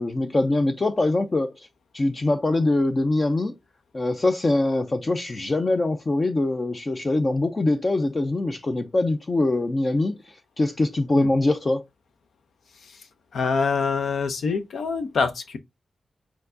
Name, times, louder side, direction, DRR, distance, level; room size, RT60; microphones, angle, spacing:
voice 1, 0.0-1.7 1.9-3.6 3.9-11.8, left 2 dB, 25° left, 0.4 m, -23 dB
voice 2, 13.3-15.6, left 5 dB, 80° left, 0.7 m, -25 dB
4.5 x 4.5 x 2.5 m
wide cardioid pair, 170°, 0 cm